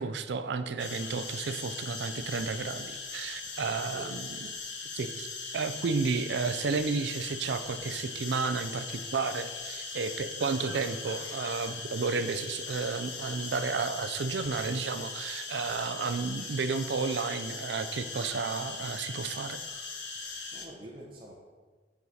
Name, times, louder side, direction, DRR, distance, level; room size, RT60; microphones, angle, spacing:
voice 1, 0.0-4.5 4.9-5.3 5.5-19.6, right 4 dB, 65° right, 10 dB, 0.4 m, -32 dB
sound 1, 0.8-20.7, left 4 dB, 70° left, 0.8 m, -40 dB
voice 2, 20.1-21.3, equal, 25° right, -5 dB, 0.7 m, -47 dB
7.0 x 4.7 x 4.1 m, 1.4 s
head